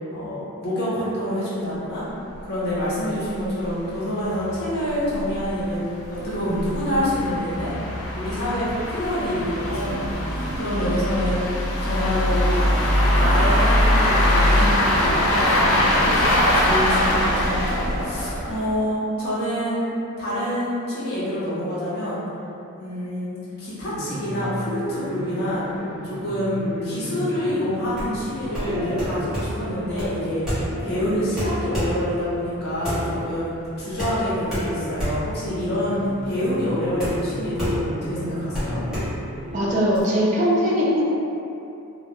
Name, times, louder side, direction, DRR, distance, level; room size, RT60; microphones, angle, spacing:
voice 1, 0.1-2.1 2.4-5.8 6.1-7.7 8.2-11.4 11.8-12.5 13.1-19.8 20.2-22.2 22.8-25.6 26.0-30.5 30.8-33.5 33.8-38.8, equal, 45° left, -10 dB, 0.7 m, -26 dB
sound 1, 2.3-2.4 2.7-2.8 3.2-3.3 3.7-3.8 4.4-18.8, left 1 dB, 85° left, 0.4 m, -22 dB
sound 2, 23.8-39.9, equal, 30° left, 1.0 m, -35 dB
sound 3, 27.9-40.0, equal, ahead, 0.8 m, -30 dB
voice 2, 39.5-41.0, equal, 35° right, -6 dB, 0.3 m, -20 dB
2.2 x 2.1 x 2.8 m, 2.8 s
head